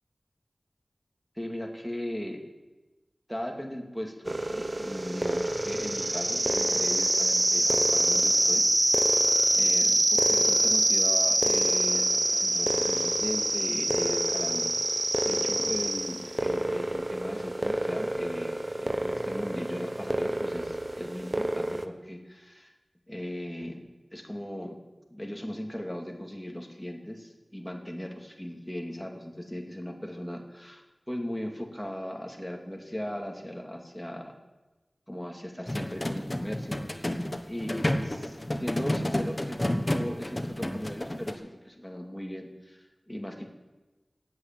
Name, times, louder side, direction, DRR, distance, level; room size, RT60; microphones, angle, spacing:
voice 1, 1.4-2.4 3.3-9.1 9.6-22.7 23.1-23.8 24.1-24.8 25.1-34.4 35.1-43.5, equal, 5° left, 2 dB, 2.3 m, -38 dB
sound 1, 4.3-21.8, right 1 dB, 35° right, 0.9 m, -26 dB
sound 2, 35.7-41.3, left 1 dB, 25° left, 1.2 m, -31 dB
12.5 x 8.3 x 9.0 m, 1.1 s
wide cardioid pair, 55°, 0 cm